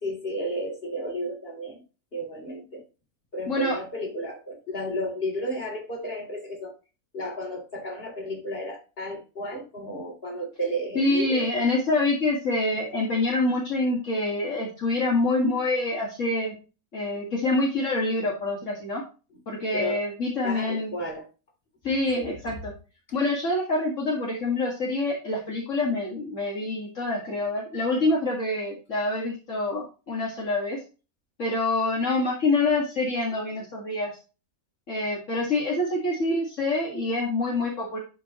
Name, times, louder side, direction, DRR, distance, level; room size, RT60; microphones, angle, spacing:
voice 1, 0.0-1.8 2.1-2.8 3.3-6.7 7.1-11.5 19.7-20.0 20.4-21.3 22.2-22.4, equal, 40° left, 0 dB, 3.7 m, -32 dB
voice 2, 3.5-3.8 10.9-16.5 16.9-19.0 19.5-20.9 21.8-22.7 23.1-30.8 31.4-34.1 34.9-38.0, left 2 dB, 55° left, -3 dB, 2.5 m, -26 dB
11.5 x 6.0 x 3.1 m, 0.32 s
omnidirectional pair, 1.5 m